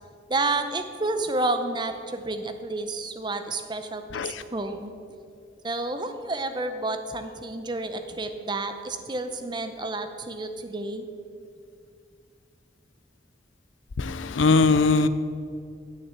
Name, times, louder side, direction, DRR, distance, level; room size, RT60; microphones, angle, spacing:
voice 1, 0.3-4.9 5.6-11.1, right 2 dB, 25° right, 8 dB, 0.7 m, -30 dB
voice 2, 14.0-15.1, left 3 dB, 85° left, 13 dB, 0.6 m, -20 dB
9.9 x 6.8 x 8.2 m, 2.3 s
head